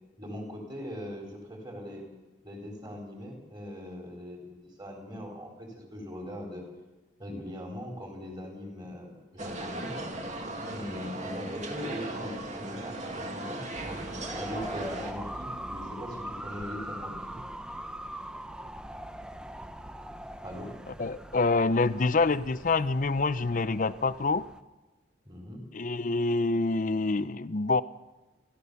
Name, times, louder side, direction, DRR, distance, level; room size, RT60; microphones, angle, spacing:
voice 1, 0.2-2.1 2.4-6.6 7.2-10.0 10.7-14.1 14.4-17.4 20.4-20.7 25.3-25.6, equal, 20° right, 0 dB, 4.2 m, -41 dB
sound 1, 9.4-15.1, right 1 dB, 35° right, 2.2 m, -37 dB
sound 2, 13.7-24.6, right 1 dB, 5° right, 0.6 m, -41 dB
voice 2, 21.0-24.5 25.7-27.8, left 3 dB, 40° left, 15 dB, 0.6 m, -26 dB
29.0 x 13.0 x 6.9 m, 1.1 s
head